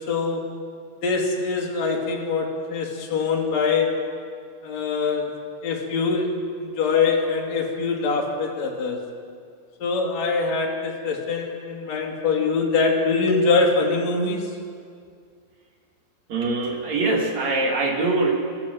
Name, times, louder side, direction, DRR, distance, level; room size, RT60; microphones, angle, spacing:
voice 1, 0.1-0.5 1.0-4.0 4.6-5.3 5.6-6.3 6.6-9.0 9.8-14.4, left 4 dB, 45° left, -1 dB, 3.6 m, -23 dB
voice 2, 16.3-18.3, right 3 dB, 45° right, 1 dB, 3.1 m, -23 dB
26.0 x 14.5 x 7.8 m, 2.1 s
omnidirectional pair, 5.0 m